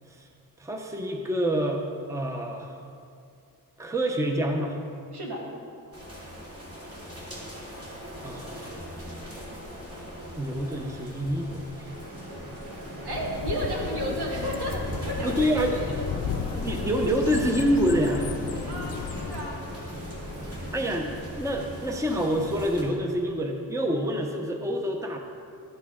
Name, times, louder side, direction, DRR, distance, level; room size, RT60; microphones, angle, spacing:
voice 1, 0.6-2.8 3.8-4.8 8.2-8.8 10.4-11.9 15.2-15.8 16.5-18.3 20.7-25.2, equal, 10° right, 3 dB, 0.7 m, -27 dB
sound 1, 5.9-22.8, equal, 40° right, 2.5 m, -39 dB
sound 2, 11.8-21.0, equal, 60° right, 2.4 m, -42 dB
voice 2, 13.0-15.8 18.6-19.5, right 1 dB, 80° right, -2 dB, 1.9 m, -33 dB
sound 3, 13.1-19.5, left 7 dB, 60° left, 0.6 m, -34 dB
12.0 x 8.2 x 3.7 m, 2.3 s
wide cardioid pair, 115°, 38 cm